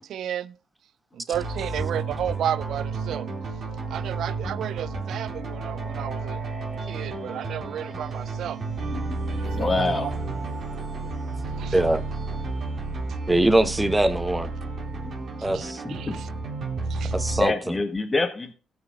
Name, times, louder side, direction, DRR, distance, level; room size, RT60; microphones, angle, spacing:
voice 1, 0.1-0.5 1.1-3.3 3.9-6.4 6.9-8.6 9.6-10.1 11.5-11.8 15.5-16.3 16.9-17.1, right 10 dB, 70° right, 0.4 m, -32 dB
sound 1, 1.3-17.4, right 3 dB, 55° right, 3.8 m, -31 dB
voice 2, 8.9-10.1 14.9-15.3 15.8-16.1 17.4-18.5, left 3 dB, 25° left, 1.4 m, -27 dB
voice 3, 13.3-14.5 15.4-15.8 17.1-17.7, right 1 dB, 15° right, 1.1 m, -22 dB
17.0 x 6.0 x 3.6 m
cardioid pair, 90°, 0 cm